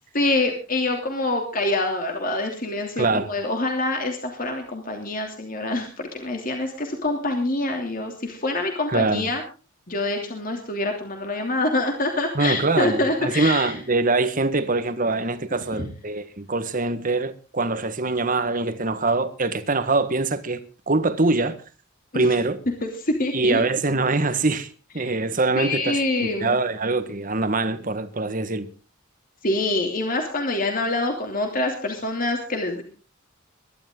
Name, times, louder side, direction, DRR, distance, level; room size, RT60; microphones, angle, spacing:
voice 1, 0.1-9.4 9.9-13.7 22.1-22.2 22.8-23.6 25.6-26.6 29.4-32.8, left 2 dB, 45° left, 2.9 m, -25 dB
voice 2, 3.0-3.3 8.9-9.3 12.3-21.6 22.1-22.6 23.3-28.7, right 3 dB, 40° right, 1.5 m, -23 dB
22.5 x 12.0 x 3.8 m
head